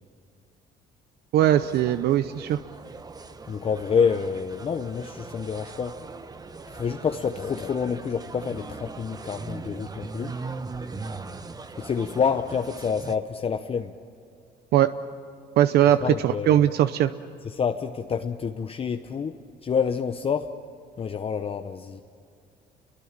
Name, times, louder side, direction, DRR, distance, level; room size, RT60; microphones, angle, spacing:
voice 1, 1.3-2.6 14.7-14.9 15.6-17.1, right 11 dB, 70° right, 12 dB, 0.7 m, -20 dB
sound 1, 1.4-13.2, right 4 dB, 20° right, 1.1 m, -40 dB
voice 2, 3.5-5.9 6.7-10.3 11.8-13.9 16.0-16.6 17.4-19.3 19.6-20.5 21.0-22.0, left 6 dB, 35° left, 6 dB, 0.9 m, -27 dB
28.5 x 23.0 x 7.5 m, 2.5 s
cardioid pair, 110°, 17 cm